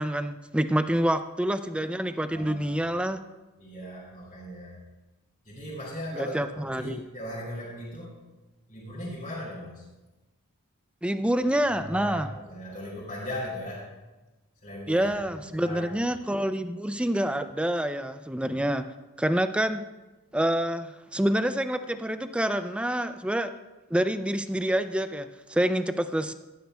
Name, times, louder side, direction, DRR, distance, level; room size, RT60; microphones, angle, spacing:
voice 1, 0.0-3.2 6.1-7.0 11.0-12.3 14.9-18.9 19.2-19.8 20.3-23.5 23.9-26.3, right 1 dB, 5° right, 10 dB, 0.3 m, -27 dB
voice 2, 2.3-2.7 3.6-4.8 5.4-8.1 8.7-9.8 11.7-13.9 14.6-15.1 15.6-16.0, left 1 dB, 35° left, -7 dB, 3.5 m, -38 dB
16.0 x 12.0 x 2.3 m, 1.1 s
head